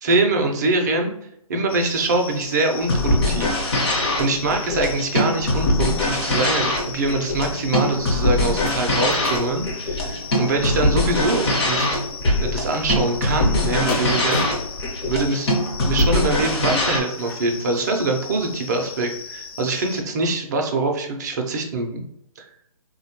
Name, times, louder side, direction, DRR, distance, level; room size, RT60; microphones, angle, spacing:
voice 1, 0.0-1.1 1.5-12.0 12.4-14.4 15.1-15.5 15.8-22.1 22.4-22.5, right 2 dB, 30° right, 2 dB, 0.4 m, -24 dB
sound 1, 1.7-20.0, left 6 dB, 75° left, 0.6 m, -37 dB
sound 2, 2.8-17.0, left 1 dB, 45° left, 0.9 m, -22 dB
sound 3, 8.6-17.5 18.0-18.2 18.5-18.6, left 2 dB, 30° left, 0.5 m, -35 dB
3.1 x 2.1 x 2.8 m, 0.76 s
hypercardioid pair, 150°, 19 cm